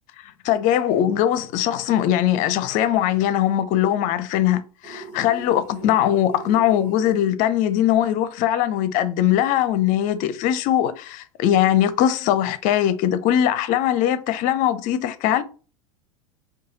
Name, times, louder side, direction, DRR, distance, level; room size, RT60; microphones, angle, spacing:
voice 1, 0.4-15.4, left 11 dB, 45° left, 0.5 m, -21 dB
sound 1, 4.8-7.2, right 4 dB, 30° right, 1.1 m, -40 dB
4.7 x 2.3 x 2.7 m
hypercardioid pair, 90°, 18 cm